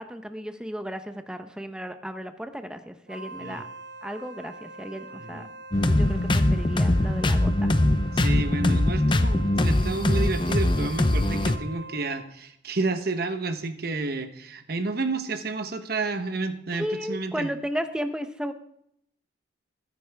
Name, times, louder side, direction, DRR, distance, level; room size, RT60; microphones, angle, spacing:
voice 1, 0.0-3.7 4.0-5.5 5.9-7.7 16.7-18.5, equal, 5° right, 8 dB, 0.8 m, -34 dB
Wind instrument woodwind instrument, 3.1-12.4, right 2 dB, 70° right, 1.7 m, -43 dB
voice 2, 5.1-5.5 8.1-17.5, right 3 dB, 50° right, 8 dB, 1.1 m, -30 dB
sound 1, 5.7-11.0, left 2 dB, 55° left, 1.1 m, -36 dB
sound 2, 5.7-11.6, left 1 dB, 25° left, 0.6 m, -22 dB
20.0 x 10.5 x 3.5 m, 0.73 s
head